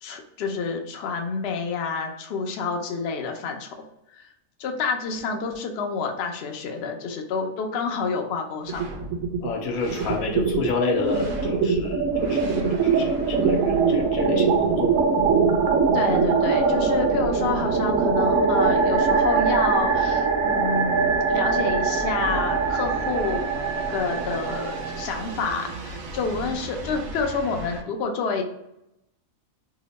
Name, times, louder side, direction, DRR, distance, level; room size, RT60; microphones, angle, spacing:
voice 1, 0.0-3.8 4.1-4.3 4.6-8.8 15.9-23.5 23.9-28.4, left 4 dB, 65° left, 3 dB, 0.7 m, -28 dB
sound 1, 8.7-9.5 9.8-27.8, right 5 dB, 75° right, 1.0 m, -23 dB
voice 2, 9.4-15.0, left 4 dB, 85° left, 2 dB, 1.1 m, -29 dB
2.9 x 2.1 x 3.9 m, 0.83 s
omnidirectional pair, 1.5 m